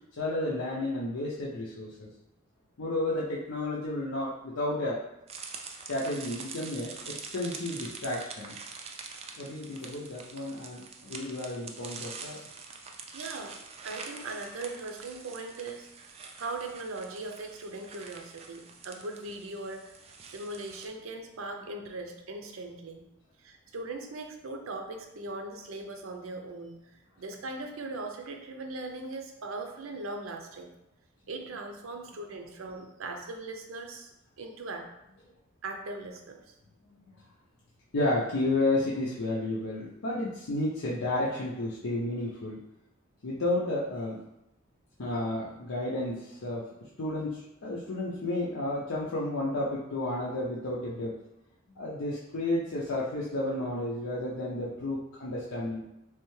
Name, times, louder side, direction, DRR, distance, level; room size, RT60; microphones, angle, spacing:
voice 1, 0.2-2.1 2.8-5.0 5.9-8.5 9.4-12.5 37.9-42.6 43.2-44.2 45.0-51.1 51.8-55.8, left 2 dB, 80° left, -5 dB, 0.6 m, -32 dB
sound 1, 5.3-20.9, right 5 dB, 30° right, 0.3 m, -45 dB
voice 2, 13.1-20.0 20.3-23.0 23.4-26.8 27.2-30.7 31.3-34.1 34.4-34.8 35.6-36.5, right 2 dB, 85° right, 3 dB, 0.6 m, -39 dB
3.5 x 3.3 x 3.1 m, 0.89 s
head